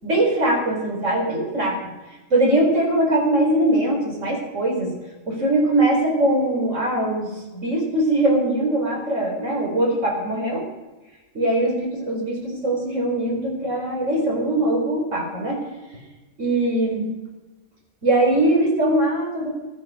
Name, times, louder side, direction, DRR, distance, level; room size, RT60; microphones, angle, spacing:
voice 1, 0.0-1.8 2.3-4.9 5.3-10.6 11.3-15.6 16.4-17.1 18.0-19.5, right 1 dB, 65° right, -1 dB, 4.4 m, -21 dB
16.0 x 12.0 x 6.2 m, 1.1 s
omnidirectional pair, 1.4 m